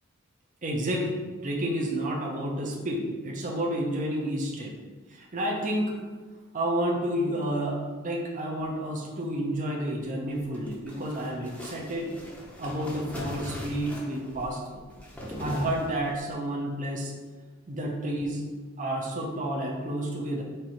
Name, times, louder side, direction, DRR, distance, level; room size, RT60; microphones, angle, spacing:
voice 1, 0.6-4.7 5.1-5.9 6.5-12.1 12.6-14.8 15.4-17.1 17.7-20.4, right 1 dB, 40° right, -1 dB, 0.7 m, -30 dB
sound 1, 10.2-16.3, equal, 5° left, 0.7 m, -41 dB
4.5 x 2.7 x 4.4 m, 1.4 s
head